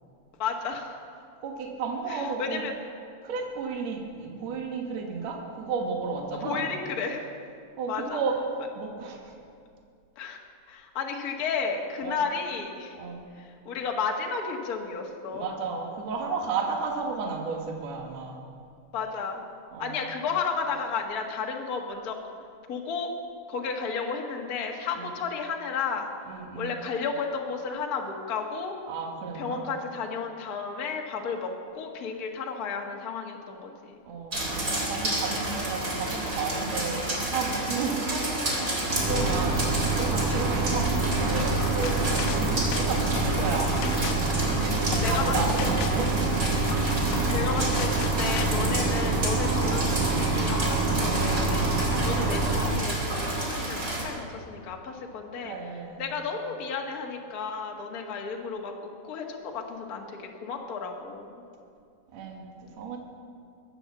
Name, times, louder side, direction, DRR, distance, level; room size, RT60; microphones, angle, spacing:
voice 1, 0.4-1.0 2.1-2.7 6.4-7.2 7.9-8.2 10.1-10.4 10.7-12.9 13.3-15.5 18.9-19.4 19.8-22.1 22.7-23.1 23.5-26.1 26.5-28.7 29.3-34.0 45.0-45.8 47.3-51.7 52.0-55.5 56.0-58.8 59.0-61.3, left 5 dB, 60° left, 1 dB, 0.9 m, -33 dB
voice 2, 1.4-2.6 3.2-6.7 7.8-8.4 8.7-9.3 12.0-12.2 13.0-13.2 15.3-18.4 19.7-20.0 25.0-25.1 26.3-26.8 28.9-29.6 34.1-43.9 44.5-46.1 52.0-52.4 55.4-56.3 62.1-63.0, right 5 dB, 55° right, 1 dB, 2.6 m, -33 dB
sound 1, 34.3-54.0, right 1 dB, 25° right, 3.0 m, -31 dB
sound 2, 38.9-52.7, right 3 dB, 70° right, 3.9 m, -26 dB
sound 3, 41.4-48.4, left 7 dB, 75° left, 2.3 m, -36 dB
21.5 x 9.0 x 7.3 m, 2.4 s
omnidirectional pair, 4.3 m